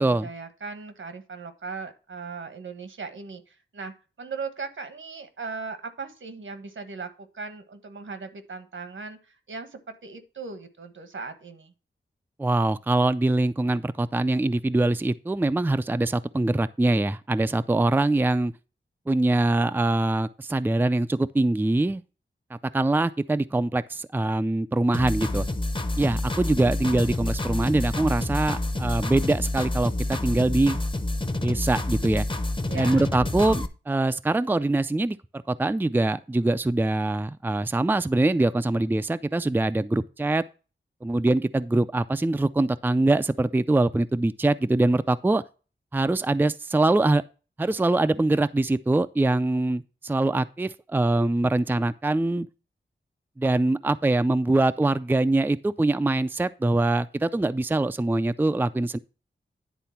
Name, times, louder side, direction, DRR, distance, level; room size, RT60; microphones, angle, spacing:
voice 1, 0.0-11.7 32.7-33.1, right 4 dB, 80° right, 1.3 m, -38 dB
voice 2, 12.4-18.5 19.1-22.0 22.5-25.5 26.0-30.8 31.4-32.3 32.7-35.2 35.5-40.4 41.0-45.4 45.9-47.2 47.6-52.5 53.4-59.0, right 2 dB, 10° right, 0.4 m, -23 dB
sound 1, 24.9-33.7, left 2 dB, 25° left, 0.9 m, -28 dB
10.0 x 3.8 x 5.7 m
wide cardioid pair, 70°, 20 cm